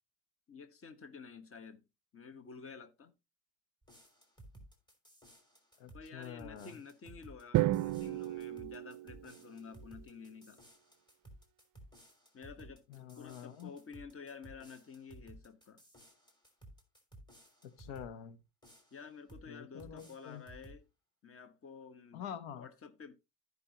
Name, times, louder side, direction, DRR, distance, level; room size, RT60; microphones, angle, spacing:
voice 1, 0.5-1.8 2.1-3.1 5.9-10.6 12.3-12.9 13.2-15.8 18.9-20.8 21.2-22.2 22.6-23.1, left 5 dB, 30° left, 1.3 m, -51 dB
sound 1, 3.8-18.1 18.6-19.5 19.8-20.8, right 1 dB, 10° left, 3.3 m, -57 dB
voice 2, 5.8-6.8 12.9-13.7 17.6-18.4 19.5-20.4 22.1-22.7, left 9 dB, 75° left, 1.2 m, -46 dB
Drum, 7.5-9.7, right 16 dB, 45° right, 0.5 m, -33 dB
14.5 x 5.4 x 2.9 m
supercardioid pair, 105°, 47 cm